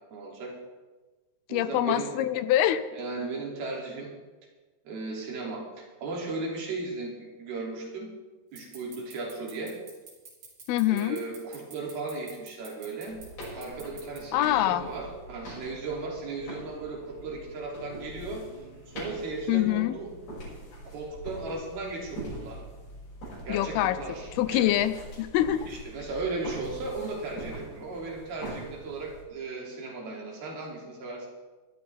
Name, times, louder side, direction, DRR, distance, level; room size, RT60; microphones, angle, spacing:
voice 1, 0.1-0.6 1.5-2.1 2.9-4.2 4.8-8.1 8.5-9.8 10.9-13.2 13.6-18.5 18.9-20.2 20.8-22.6 23.5-24.8 25.6-31.3, right 3 dB, 75° right, -2 dB, 4.7 m, -36 dB
voice 2, 1.5-2.8 10.7-11.2 14.3-14.8 19.5-20.0 23.5-24.0 24.4-25.7, left 13 dB, 90° left, 13 dB, 2.6 m, -25 dB
sound 1, 8.5-14.2, right 4 dB, 60° right, 4.8 m, -47 dB
sound 2, 13.1-29.2, right 1 dB, 70° left, 8.0 m, -43 dB
sound 3, 14.4-19.5, right 1 dB, 50° left, 3.9 m, -50 dB
20.5 x 12.5 x 3.5 m, 1.3 s
omnidirectional pair, 4.5 m